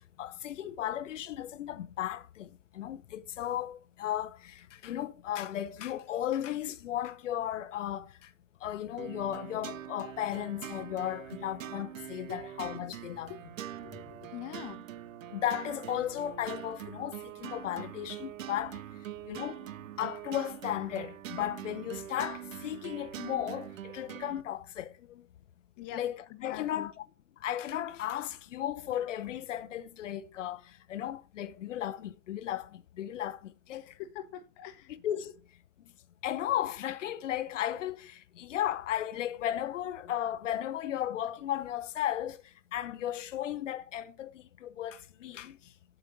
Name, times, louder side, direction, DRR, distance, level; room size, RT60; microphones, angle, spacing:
voice 1, 0.0-2.5 2.7-8.1 8.6-13.3 15.3-18.8 19.3-19.6 20.0-25.2 25.9-26.9 27.4-30.6 30.9-33.8 34.9-35.3 36.2-42.4 42.7-45.6, left 11 dB, 65° left, 0.8 m, -35 dB
sound 1, 9.0-24.4, right 11 dB, 75° right, 0.5 m, -43 dB
voice 2, 13.8-14.8 25.8-26.0 26.4-26.9 33.7-34.9, left 11 dB, 45° left, 1.0 m, -44 dB
7.9 x 5.4 x 6.6 m
figure-of-eight pair, 85°, 40 cm